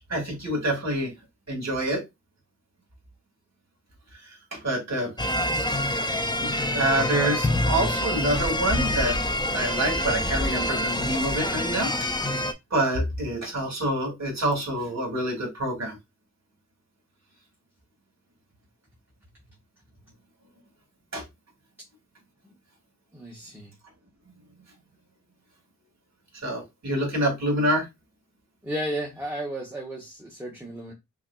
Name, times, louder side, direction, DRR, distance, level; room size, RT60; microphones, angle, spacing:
voice 1, 0.1-1.1 1.5-2.0 4.6-5.1 6.4-9.2 9.5-11.9 12.7-16.0 21.1-21.2 26.4-27.8, right 1 dB, 60° right, 2.2 m, -26 dB
sound 1, 5.2-12.5, left 1 dB, 15° left, 0.4 m, -26 dB
voice 2, 23.1-23.7 28.6-30.9, right 1 dB, 5° right, 1.0 m, -33 dB
5.4 x 2.5 x 2.3 m
wide cardioid pair, 105°, 30 cm